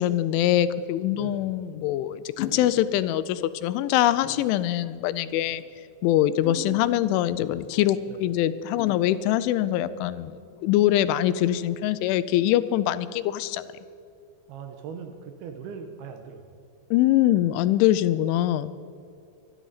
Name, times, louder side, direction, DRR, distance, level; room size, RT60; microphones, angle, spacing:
voice 1, 0.0-5.6 6.0-13.7 16.9-18.7, left 13 dB, 90° left, 14 dB, 3.0 m, -23 dB
voice 2, 1.1-1.5 8.1-8.3 14.5-16.6, right 6 dB, 80° right, 5 dB, 2.4 m, -40 dB
sound 1, 2.4-2.8 3.3-3.5 4.2-4.6 5.4-5.7 6.4-7.3 8.8-9.3, left 9 dB, 70° left, 2.2 m, -39 dB
24.5 x 11.5 x 4.1 m, 2.5 s
omnidirectional pair, 5.4 m